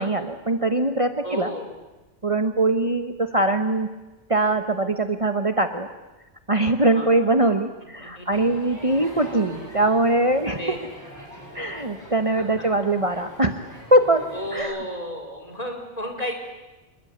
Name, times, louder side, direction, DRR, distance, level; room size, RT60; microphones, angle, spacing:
voice 1, 0.0-1.5 2.2-3.9 4.3-5.9 6.5-10.8 11.5-14.2 14.5-14.8, right 2 dB, 30° right, 7 dB, 1.2 m, -22 dB
voice 2, 1.2-1.7 6.8-7.1 8.0-8.4 10.5-10.8 12.4-12.7 14.3-16.4, equal, 35° left, 3 dB, 4.7 m, -33 dB
Crowd, 8.3-14.6, equal, 15° right, 8.1 m, -43 dB
27.0 x 22.0 x 9.6 m, 1.1 s
omnidirectional pair, 1.2 m